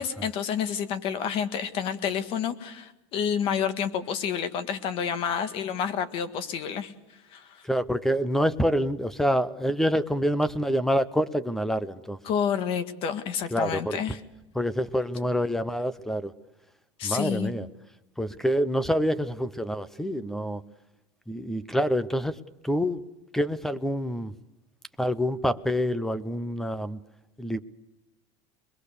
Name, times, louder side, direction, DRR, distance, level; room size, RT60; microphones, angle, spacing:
voice 1, 0.0-6.9 7.3-7.6 12.2-14.2 17.0-17.5, left 7 dB, 40° left, 11 dB, 1.7 m, -29 dB
voice 2, 7.6-12.2 13.5-14.0 14.5-16.3 17.0-17.7 18.2-20.6 21.3-22.4 22.6-23.0 23.3-24.3 25.0-27.0 27.4-27.6, equal, 5° left, 16 dB, 0.7 m, -26 dB
25.0 x 21.5 x 6.8 m, 0.97 s
supercardioid pair, 160°, 14 cm